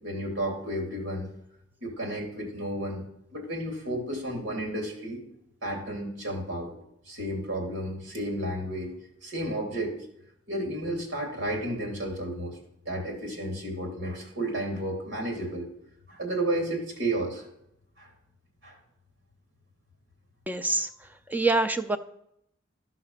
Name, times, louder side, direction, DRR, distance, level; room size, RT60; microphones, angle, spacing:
voice 1, 0.0-1.3 1.8-3.0 3.3-5.2 5.6-6.7 7.1-8.9 9.2-9.9 10.5-12.5 12.8-15.7 16.1-17.5 18.0-18.1 18.6-18.8, right 1 dB, 85° right, 0 dB, 3.1 m, -32 dB
voice 2, 20.5-20.9 21.3-22.0, right 2 dB, 10° right, 10 dB, 0.4 m, -25 dB
13.0 x 5.8 x 5.6 m, 0.77 s
head